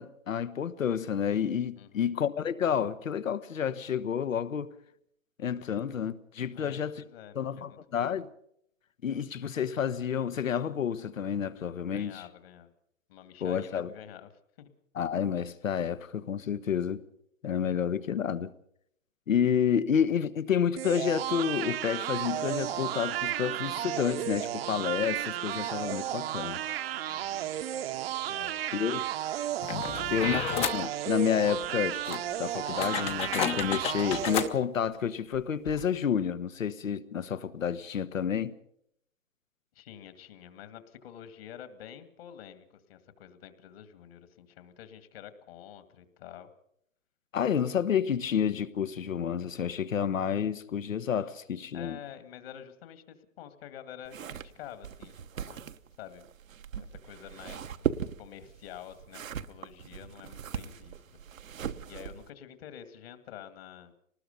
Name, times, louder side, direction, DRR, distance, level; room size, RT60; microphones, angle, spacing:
voice 1, 0.0-4.7 5.4-7.0 7.3-8.3 9.0-12.2 13.4-13.9 14.9-17.0 17.4-18.5 19.3-26.6 28.7-29.1 30.1-38.6 47.3-52.0, left 8 dB, 75° left, 1.3 m, -30 dB
voice 2, 1.8-2.1 6.5-8.2 11.9-12.7 13.1-14.7 27.1-27.6 28.3-29.0 29.9-30.5 39.7-46.5 51.7-55.7 56.0-56.3 56.8-57.7 58.2-61.0 61.9-64.0, left 10 dB, 45° left, 2.2 m, -48 dB
sound 1, 20.8-34.5, right 12 dB, 45° right, 1.0 m, -33 dB
sound 2, 29.6-30.8 31.6-31.7 32.0-34.5 35.3-35.4 35.7-35.8, left 8 dB, 15° left, 0.8 m, -32 dB
sound 3, 54.0-62.3, right 8 dB, 75° right, 1.1 m, -39 dB
25.0 x 19.5 x 5.3 m
hypercardioid pair, 130°, 41 cm